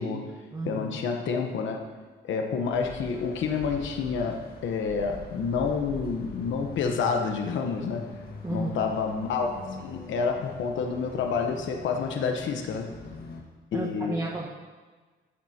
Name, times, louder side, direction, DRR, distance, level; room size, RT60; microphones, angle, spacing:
voice 1, 0.0-0.3 0.7-1.9 2.3-8.1 8.5-12.9 13.7-14.2, left 5 dB, 75° left, 3 dB, 1.0 m, -29 dB
voice 2, 0.5-0.9 8.4-8.8 13.7-14.5, right 2 dB, 20° right, -4 dB, 1.3 m, -32 dB
sound 1, 2.7-13.4, left 4 dB, 50° left, 1.6 m, -43 dB
14.0 x 7.6 x 2.9 m, 1.4 s
cardioid pair, 90°, 20 cm